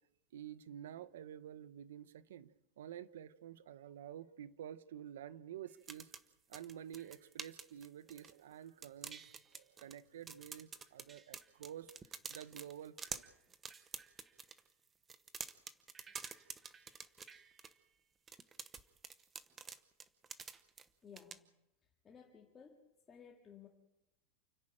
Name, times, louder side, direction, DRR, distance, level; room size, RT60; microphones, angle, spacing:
voice 1, 0.3-6.1 6.5-13.3, right 10 dB, 90° right, 16 dB, 1.0 m, -50 dB
sound 1, 5.7-8.5 8.8-10.0 10.3-14.6 15.0-17.7 18.3-20.9 21.2-21.4, right 5 dB, 15° right, 0.9 m, -48 dB
voice 2, 21.0-21.5 22.0-23.7, left 7 dB, 20° left, 0 dB, 2.1 m, -57 dB
29.0 x 11.0 x 9.0 m, 0.92 s
supercardioid pair, 155°, 0 cm